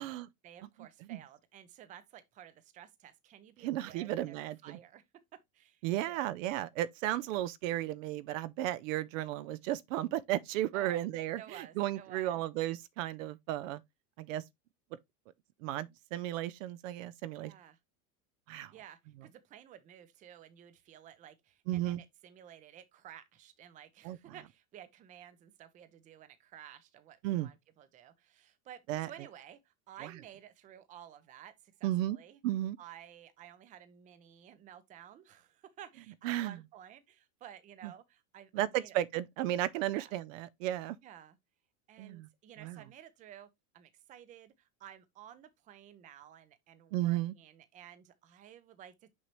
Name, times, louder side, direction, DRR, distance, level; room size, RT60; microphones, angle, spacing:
voice 1, 0.4-5.0 5.5-6.2 10.7-11.1 11.4-12.4 17.4-17.8 18.7-32.4 32.8-39.0 39.8-40.1 41.0-41.4 41.9-49.1, right 10 dB, 20° right, 0.5 m, -54 dB
voice 2, 3.6-4.8 5.8-13.8 14.2-14.4 15.6-17.5 18.5-18.7 21.7-22.0 24.0-24.2 27.2-27.5 28.9-29.1 31.8-32.2 32.4-32.8 36.2-36.6 38.5-41.0 42.0-42.3 42.6-42.8 46.9-47.3, right 14 dB, 60° right, 0.6 m, -34 dB
6.3 x 5.4 x 3.0 m
supercardioid pair, 160°, 45 cm